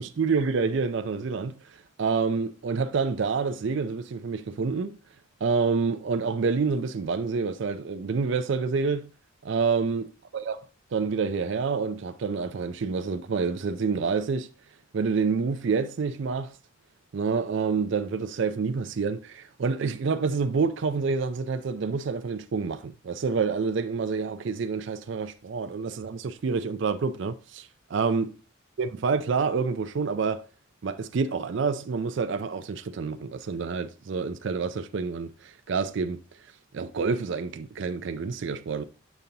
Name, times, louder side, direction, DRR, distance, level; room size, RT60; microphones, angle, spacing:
voice 1, 0.0-1.6 2.0-4.9 5.4-9.1 9.4-10.1 10.3-10.6 10.9-14.5 14.9-16.5 17.1-28.3 28.8-30.4 30.8-36.2 36.7-38.8, right 5 dB, 60° right, 0.4 m, -28 dB
7.1 x 5.3 x 2.8 m
head